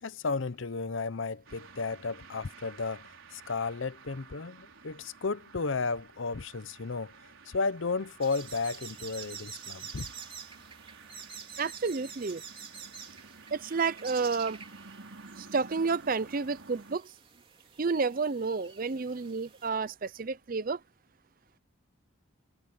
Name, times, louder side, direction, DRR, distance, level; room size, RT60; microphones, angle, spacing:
voice 1, 0.0-7.1 7.5-10.1, left 4 dB, 65° left, 0.7 m, -33 dB
sound 1, 1.5-17.0, right 4 dB, 75° right, 4.5 m, -52 dB
sound 2, 8.2-19.7, right 7 dB, 25° right, 3.4 m, -48 dB
voice 2, 11.6-12.4 13.5-14.6 15.4-17.1 17.8-20.8, right 4 dB, 40° right, 0.5 m, -30 dB
head